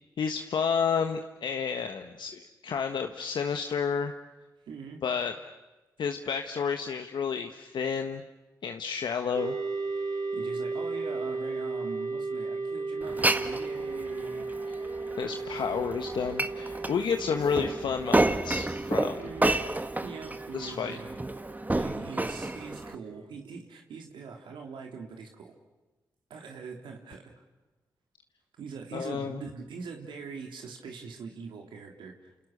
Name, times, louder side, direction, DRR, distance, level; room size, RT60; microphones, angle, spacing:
voice 1, 0.2-4.1 5.0-5.3 6.0-8.2 8.6-9.5 15.2-19.1 20.5-21.0 28.9-29.4, left 6 dB, 70° left, 5 dB, 1.4 m, -30 dB
voice 2, 4.7-5.0 10.1-14.5 19.2-21.2 21.8-25.5 26.3-27.2 28.6-32.3, right 5 dB, 80° right, 2 dB, 3.5 m, -42 dB
sound 1, 9.3-23.2, right 3 dB, 50° right, 3.6 m, -36 dB
Glass, 13.0-22.9, right 2 dB, 20° right, 1.7 m, -31 dB
29.0 x 28.5 x 6.7 m, 1.1 s
supercardioid pair, 45°, 8 cm